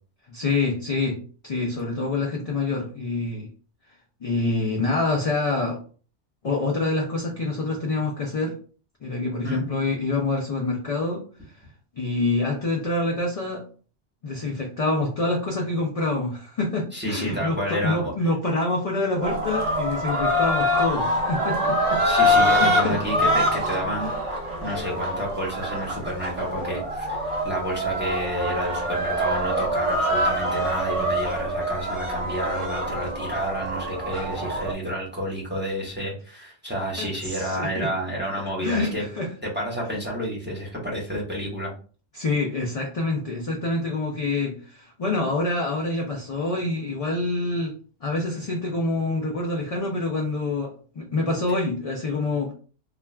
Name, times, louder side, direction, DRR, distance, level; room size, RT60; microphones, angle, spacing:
voice 1, 0.3-3.5 4.2-5.8 6.4-8.5 9.0-11.2 12.0-13.6 14.2-22.0 22.5-23.0 37.0-37.9 38.6-39.3 42.1-47.7 48.0-52.5, left 2 dB, 55° left, 0 dB, 0.4 m, -26 dB
voice 2, 16.9-18.1 22.0-39.1 39.4-41.7, equal, 10° right, -4 dB, 0.8 m, -30 dB
sound 1, 19.2-34.7, equal, 45° right, 0.4 m, -25 dB
2.3 x 2.2 x 3.1 m, 0.40 s
omnidirectional pair, 1.2 m